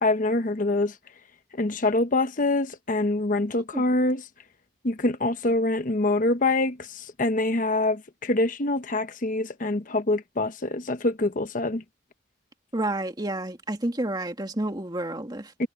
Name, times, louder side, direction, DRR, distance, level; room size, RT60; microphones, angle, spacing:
voice 1, 0.0-0.9 1.6-4.3 4.8-11.8 15.6-15.7, left 2 dB, 45° left, 1.0 m, -25 dB
voice 2, 12.7-15.7, right 1 dB, 25° right, 2.1 m, -30 dB
head